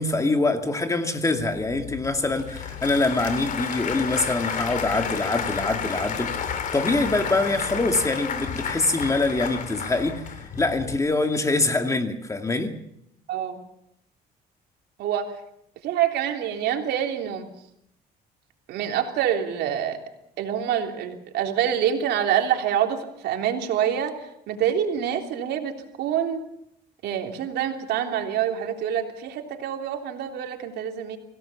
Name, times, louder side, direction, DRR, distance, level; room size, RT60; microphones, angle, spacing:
voice 1, 0.0-12.7, left 2 dB, 20° left, 6 dB, 2.4 m, -24 dB
Applause / Crowd, 1.4-11.0, left 7 dB, 50° left, 3.1 m, -31 dB
voice 2, 13.3-13.6 15.0-15.4 15.8-17.5 18.7-20.0 20.4-26.4 27.0-31.2, right 9 dB, 75° right, 4 dB, 3.4 m, -26 dB
25.0 x 17.0 x 7.3 m, 0.77 s
cardioid pair, 110°, 17 cm